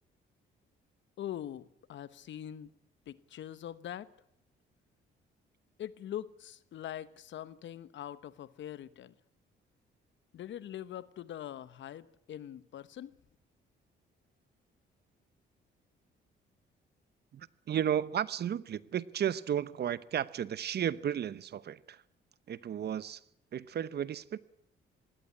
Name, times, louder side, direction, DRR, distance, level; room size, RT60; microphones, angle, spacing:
voice 1, 1.2-2.7 3.1-4.1 5.8-9.1 10.3-13.2, left 11 dB, 70° left, 1.1 m, -43 dB
voice 2, 17.3-22.0 22.5-23.2 23.5-24.4, right 9 dB, 55° right, 0.9 m, -33 dB
19.5 x 16.5 x 9.7 m
cardioid pair, 90°, 20 cm